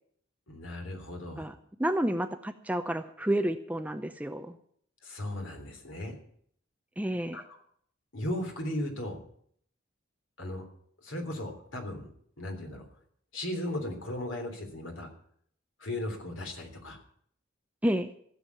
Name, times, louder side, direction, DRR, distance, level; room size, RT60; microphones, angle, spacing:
voice 1, 0.5-1.5 5.0-6.1 7.3-7.4 8.1-9.2 10.4-10.7 11.0-12.1 12.4-12.8 13.3-15.1 15.8-17.0, left 1 dB, 80° left, 4 dB, 3.4 m, -36 dB
voice 2, 1.4-4.6 7.0-7.4 17.8-18.1, right 1 dB, 5° right, 9 dB, 0.6 m, -30 dB
16.0 x 7.4 x 8.4 m, 0.63 s
head